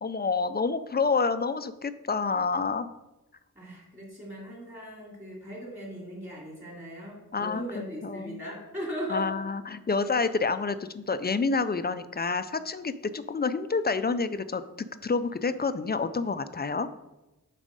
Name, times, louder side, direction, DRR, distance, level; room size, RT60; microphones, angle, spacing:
voice 1, 0.0-2.9 7.3-8.4 9.1-14.6 15.0-16.9, left 4 dB, 30° left, 12 dB, 0.4 m, -28 dB
voice 2, 3.5-9.3, equal, 20° right, -3 dB, 2.7 m, -38 dB
8.8 x 4.1 x 5.1 m, 1.0 s
wide cardioid pair, 105°, 35 cm